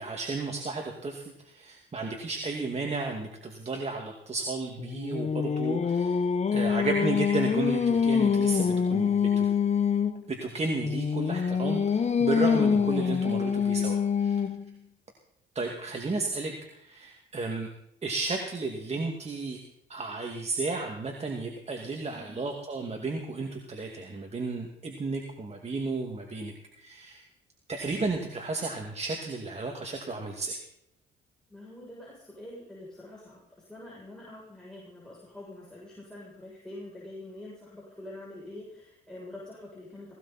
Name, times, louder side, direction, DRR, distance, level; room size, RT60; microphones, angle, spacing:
voice 1, 0.0-6.2 6.5-9.4 10.3-14.4 15.5-17.7 18.0-19.6 19.9-27.3 27.7-30.6, right 3 dB, 35° right, 2 dB, 2.3 m, -33 dB
Singing, 4.8-10.2 10.8-14.7, left 6 dB, 35° left, 0.9 m, -25 dB
voice 2, 22.1-22.4 31.5-40.1, left 1 dB, 5° left, -7 dB, 7.5 m, -45 dB
18.5 x 18.0 x 4.3 m, 0.75 s
cardioid pair, 90°, 20 cm